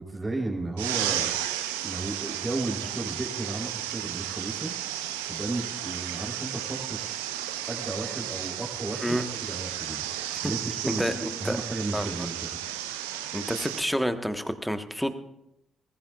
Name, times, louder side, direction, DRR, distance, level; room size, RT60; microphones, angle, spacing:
voice 1, 0.0-1.4 1.8-4.7 5.3-7.3 7.7-12.5, right 2 dB, 25° right, -1 dB, 3.7 m, -34 dB
sound 1, 0.8-13.8, right 12 dB, 80° right, 0.6 m, -33 dB
voice 2, 11.0-11.6 11.9-12.1 13.3-15.1, equal, ahead, 8 dB, 1.3 m, -29 dB
19.5 x 15.5 x 2.4 m, 0.86 s
hypercardioid pair, 40°, 0 cm